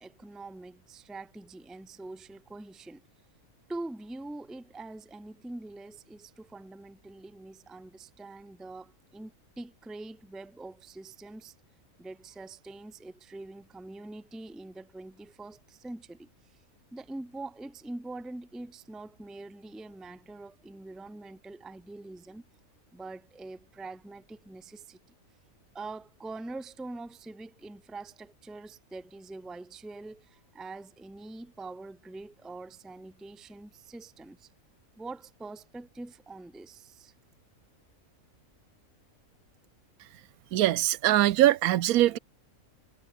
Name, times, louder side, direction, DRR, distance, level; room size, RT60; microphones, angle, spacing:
voice 1, 0.0-3.0 3.7-11.5 12.0-16.6 16.9-22.5 22.9-25.0 25.7-34.5 35.0-37.1, right 2 dB, ahead, 0.4 m, -44 dB
voice 2, 40.5-42.2, right 14 dB, 85° right, 1.1 m, -22 dB
omnidirectional pair, 1.5 m